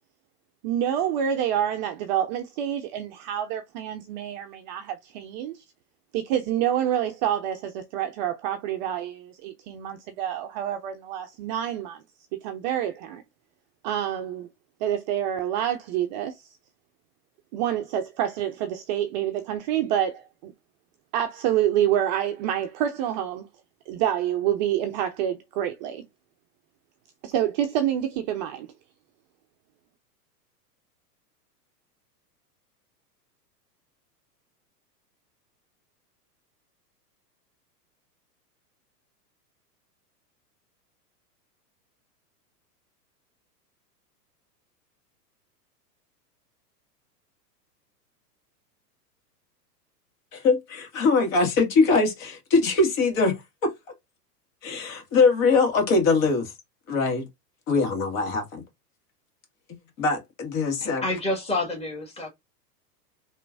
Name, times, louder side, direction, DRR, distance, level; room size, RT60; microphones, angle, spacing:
voice 1, 0.6-5.5 6.1-12.0 12.3-13.2 13.8-14.5 14.8-16.5 17.5-20.5 21.1-23.5 23.9-26.1 27.2-28.7, right 10 dB, 30° right, 0.4 m, -27 dB
voice 2, 50.3-53.4 53.6-53.7 54.6-56.5 56.9-57.3 57.7-58.6 60.0-61.0, left 4 dB, 55° left, 2.1 m, -22 dB
voice 3, 60.8-62.3, left 2 dB, 10° left, 1.7 m, -28 dB
4.4 x 3.1 x 2.6 m
hypercardioid pair, 110°, 49 cm